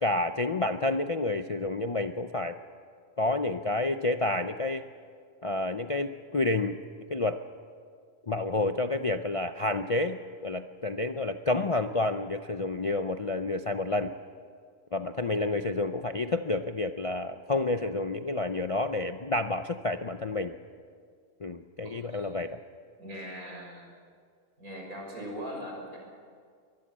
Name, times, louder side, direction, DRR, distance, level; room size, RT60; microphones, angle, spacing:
voice 1, 0.0-2.6 3.2-4.8 5.4-6.8 7.1-7.4 8.3-14.1 14.9-20.5 21.4-22.6, left 2 dB, 45° left, 7 dB, 0.4 m, -29 dB
voice 2, 21.8-22.3 23.0-23.9 24.6-26.1, equal, 85° right, 0 dB, 6.4 m, -40 dB
23.5 x 20.0 x 7.5 m, 2.1 s
omnidirectional pair, 1.4 m